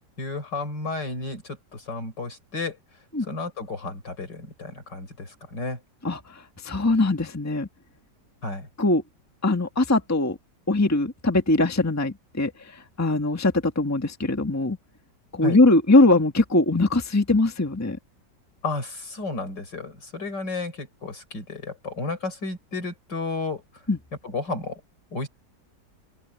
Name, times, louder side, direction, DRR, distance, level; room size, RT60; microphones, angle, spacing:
voice 1, 0.2-2.8 3.2-5.8 8.4-8.7 15.4-15.6 18.6-23.8 24.2-24.8 25.1-25.3, left 3 dB, 70° left, 6.0 m, -32 dB
voice 2, 6.0-7.7 8.8-9.0 9.4-10.4 10.7-14.8 15.3-18.0 23.9-24.0, left 2 dB, 10° left, 1.6 m, -21 dB
open air
omnidirectional pair, 1.9 m